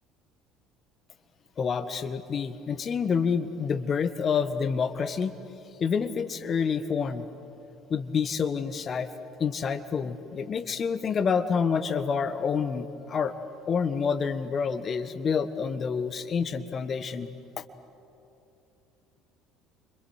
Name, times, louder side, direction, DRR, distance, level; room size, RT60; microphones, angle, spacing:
voice 1, 1.6-5.3 5.8-7.3 7.9-9.1 9.4-13.3 13.7-17.6, left 6 dB, 40° left, 10 dB, 1.5 m, -28 dB
30.0 x 26.0 x 6.6 m, 2.9 s
figure-of-eight pair, 60°, 0 cm